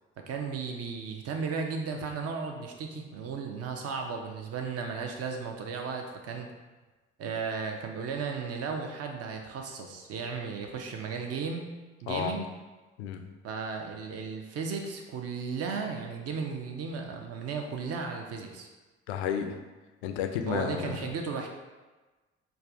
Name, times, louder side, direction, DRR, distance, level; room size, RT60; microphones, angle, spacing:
voice 1, 0.3-6.5 7.2-11.7 12.0-12.5 13.4-18.7 20.5-21.5, right 5 dB, 45° right, 3 dB, 0.7 m, -35 dB
voice 2, 13.0-13.3 19.1-19.6 20.0-21.1, left 8 dB, 75° left, 6 dB, 0.5 m, -32 dB
5.3 x 2.3 x 2.6 m, 1.2 s
figure-of-eight pair, 50°, 33 cm